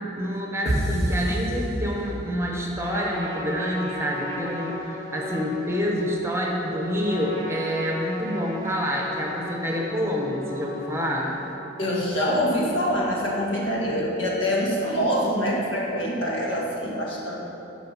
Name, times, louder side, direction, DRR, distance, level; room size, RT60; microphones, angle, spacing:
voice 1, 0.0-11.3, equal, 15° right, -1 dB, 0.9 m, -27 dB
sound 1, 0.7-2.5, right 1 dB, 35° left, 1.8 m, -27 dB
Trumpet, 2.8-11.6, equal, 15° left, 1.2 m, -36 dB
voice 2, 11.8-17.3, equal, 70° left, -4 dB, 1.9 m, -25 dB
12.5 x 4.7 x 5.6 m, 2.9 s
head